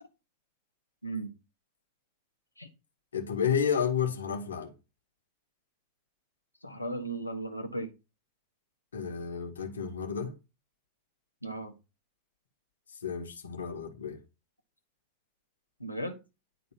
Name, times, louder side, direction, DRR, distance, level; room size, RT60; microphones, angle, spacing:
voice 1, 1.0-1.3 2.6-2.7 6.6-7.9 11.4-11.7 15.8-16.2, right 2 dB, 85° left, 1.4 m, -36 dB
voice 2, 3.1-4.7 8.9-10.3 12.9-14.2, left 7 dB, 70° left, 2.0 m, -31 dB
10.5 x 4.0 x 6.0 m
figure-of-eight pair, 90°, 0 cm